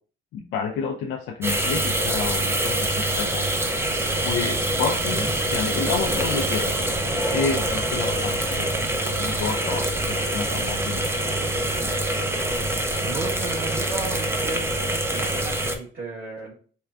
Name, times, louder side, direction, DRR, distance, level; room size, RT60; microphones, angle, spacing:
voice 1, 0.3-3.9 4.2-5.3 5.5-8.9 9.2-11.2, left 5 dB, 80° left, 3 dB, 0.4 m, -30 dB
sound 1, 1.4-15.8, right 1 dB, 10° right, 0.5 m, -25 dB
voice 2, 13.0-14.7 15.1-16.5, right 3 dB, 50° right, -7 dB, 1.4 m, -34 dB
4.4 x 2.2 x 2.4 m, 0.43 s
cardioid pair, 90°, 20 cm